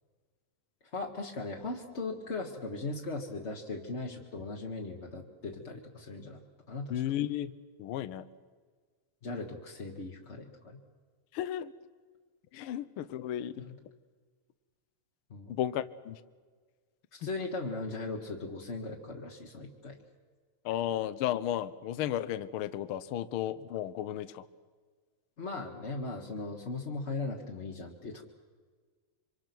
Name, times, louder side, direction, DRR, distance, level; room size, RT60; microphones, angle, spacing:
voice 1, 0.9-7.0 9.2-10.8 13.6-13.7 15.3-15.6 17.1-20.0 25.4-28.2, left 3 dB, 35° left, -1 dB, 1.2 m, -38 dB
voice 2, 6.9-7.5 7.8-8.2 11.3-11.7 12.5-13.6 15.5-16.2 17.2-17.3 20.6-24.4, left 11 dB, 75° left, 13 dB, 1.2 m, -34 dB
26.5 x 25.0 x 6.1 m, 1.5 s
omnidirectional pair, 3.4 m